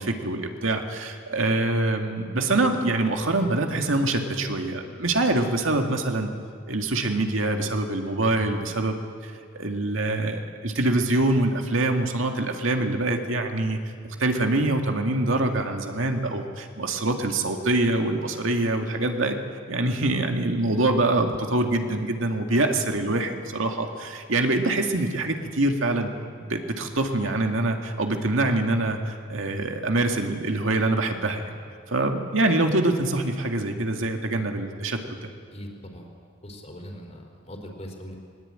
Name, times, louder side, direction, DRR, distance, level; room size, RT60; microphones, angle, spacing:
voice 1, 0.0-6.3 6.7-13.8 14.2-19.4 19.7-26.1 26.4-31.4 31.9-35.3, right 2 dB, 80° right, 4 dB, 2.1 m, -25 dB
voice 2, 35.5-36.1 36.4-38.2, equal, 35° left, 2 dB, 3.7 m, -40 dB
20.0 x 20.0 x 8.9 m, 2.2 s
head